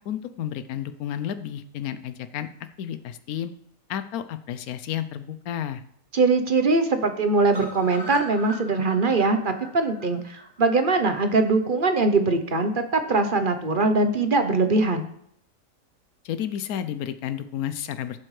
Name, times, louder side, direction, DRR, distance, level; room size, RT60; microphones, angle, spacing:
voice 1, 0.0-2.5 2.8-3.5 3.9-5.8 16.2-18.3, left 10 dB, 90° left, 11 dB, 1.1 m, -31 dB
voice 2, 6.1-15.1, right 3 dB, 40° right, 8 dB, 0.9 m, -22 dB
sound 1, 7.5-11.5 11.9-12.0 12.3-12.4 12.7-12.8, equal, 15° right, 1.9 m, -41 dB
17.0 x 7.6 x 3.2 m, 0.70 s
omnidirectional pair, 1.5 m